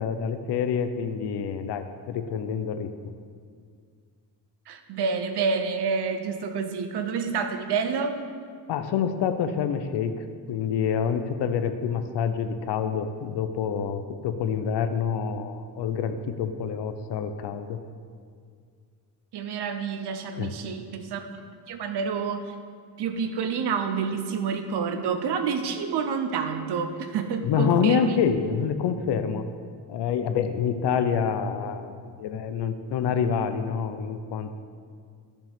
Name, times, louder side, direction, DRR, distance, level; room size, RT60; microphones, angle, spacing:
voice 1, 0.0-2.9 8.7-17.8 20.4-20.5 27.4-29.5 29.9-34.6, left 7 dB, 80° left, 9 dB, 0.7 m, -27 dB
voice 2, 4.7-8.2 19.3-21.3 21.7-22.6 23.0-28.2, right 5 dB, 70° right, 7 dB, 0.9 m, -28 dB
13.0 x 5.1 x 3.6 m, 2.1 s
cardioid pair, 105°, 41 cm